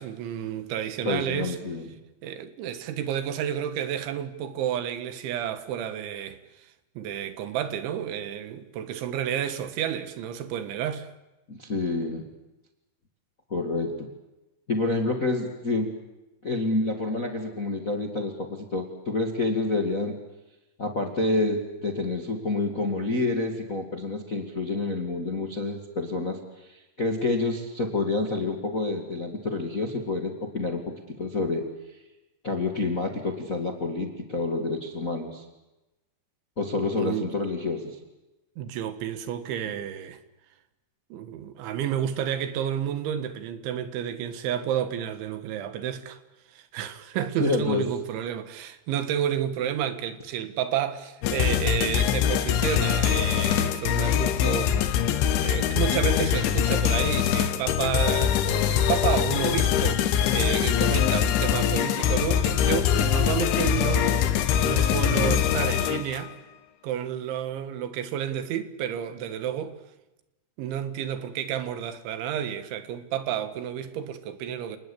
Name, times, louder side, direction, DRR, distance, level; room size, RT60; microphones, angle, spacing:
voice 1, 0.0-1.6 2.2-6.7 7.0-11.1 37.0-37.3 38.6-40.2 41.1-46.2 46.5-54.8 55.4-66.4 66.8-69.8 70.6-74.8, right 10 dB, 80° right, 3.9 m, -30 dB
voice 2, 1.0-1.9 11.5-12.2 13.5-14.1 14.7-15.9 16.4-20.2 20.8-26.4 26.7-31.7 32.4-35.4 36.6-38.0 47.4-47.9, left 2 dB, 45° left, 1.0 m, -28 dB
sound 1, 51.2-66.3, left 9 dB, 85° left, 3.7 m, -23 dB
29.5 x 20.0 x 8.6 m
omnidirectional pair, 5.3 m